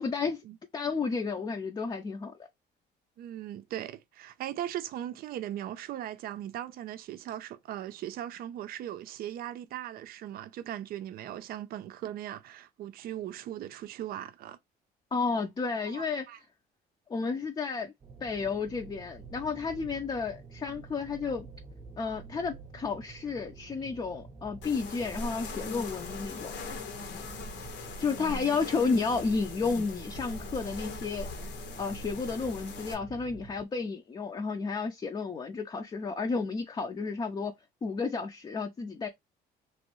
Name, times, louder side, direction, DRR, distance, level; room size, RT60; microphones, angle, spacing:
voice 1, 0.0-0.4 0.7-2.5 15.1-16.3 17.1-17.9 18.2-21.5 22.0-26.5 28.0-31.3 31.8-37.5 37.8-39.1, left 4 dB, 25° left, 0.5 m, -32 dB
voice 2, 3.2-14.6 15.9-16.4 28.0-28.7, right 12 dB, 60° right, 0.5 m, -39 dB
sound 1, 18.0-33.7, right 4 dB, 30° right, 0.8 m, -49 dB
sound 2, 24.6-32.9, left 3 dB, 80° left, 1.2 m, -40 dB
3.1 x 2.6 x 3.0 m
cardioid pair, 110°, 17 cm